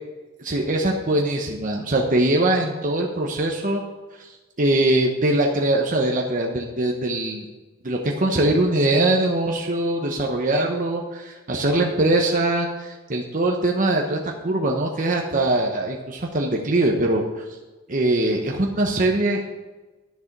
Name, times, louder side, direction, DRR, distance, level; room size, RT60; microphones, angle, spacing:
voice 1, 0.4-3.8 4.2-7.4 7.8-17.4 17.9-19.5, right 1 dB, 40° right, 0 dB, 1.0 m, -22 dB
10.5 x 7.0 x 6.0 m, 1.2 s
head